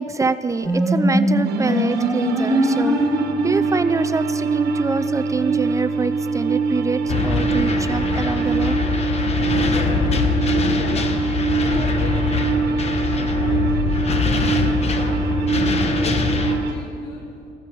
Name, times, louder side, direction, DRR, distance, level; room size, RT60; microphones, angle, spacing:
voice 1, 0.0-3.0 3.4-8.8, right 4 dB, 20° right, 12 dB, 0.5 m, -25 dB
sound 1, 0.6-16.5, right 3 dB, ahead, 4.1 m, -22 dB
sound 2, 1.4-16.8, right 7 dB, 65° right, 1.4 m, -36 dB
sound 3, 7.1-16.6, left 4 dB, 40° left, 1.2 m, -23 dB
voice 2, 9.8-11.3 11.6-14.2 14.5-17.3, left 5 dB, 85° left, 2 dB, 1.1 m, -37 dB
14.5 x 14.5 x 4.6 m, 2.9 s
cardioid pair, 110°, 17 cm